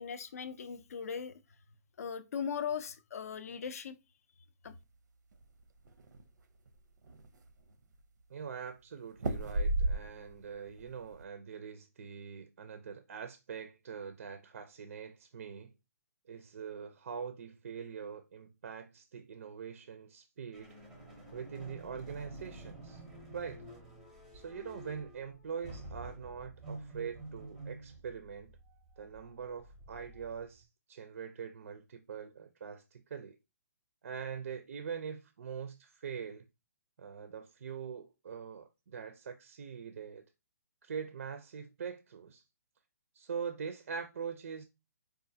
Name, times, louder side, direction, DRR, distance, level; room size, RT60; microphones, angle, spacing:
voice 1, 0.0-1.4 2.0-4.0 4.6-4.7, left 7 dB, 60° left, 0.4 m, -39 dB
sound 1, 5.3-6.2 6.7-6.8 7.0-7.7 9.2-10.4 10.8-11.2, right 2 dB, 90° right, 0.6 m, -33 dB
voice 2, 8.3-15.7 16.3-20.8 21.3-23.0 23.3-23.6 24.3-28.5 29.0-33.4 34.0-36.4 37.0-40.2 40.8-42.4 43.1-44.6, right 6 dB, 55° right, 0.4 m, -43 dB
sound 2, 20.5-30.6, right 2 dB, 5° right, 0.5 m, -49 dB
4.8 x 2.4 x 2.6 m
hypercardioid pair, 175°, 9 cm